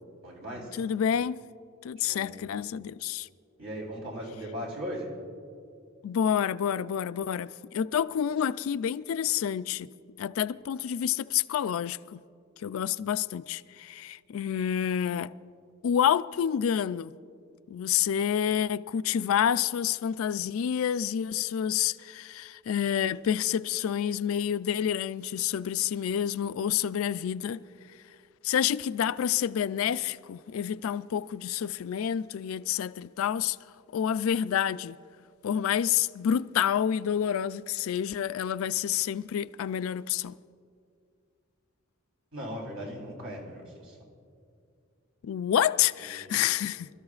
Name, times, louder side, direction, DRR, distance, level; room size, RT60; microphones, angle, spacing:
voice 1, 0.2-0.8 2.0-2.4 3.6-5.1 42.3-44.0 46.1-46.4, equal, 75° right, 3.7 m, -38 dB
voice 2, 0.8-1.4 1.8-3.3 6.0-9.9 10.2-12.2 12.6-15.3 15.8-17.1 17.7-27.6 28.4-33.6 33.9-35.0 35.4-40.4 45.2-46.9, left 9 dB, 75° left, 0.3 m, -28 dB
26.5 x 13.5 x 2.4 m
head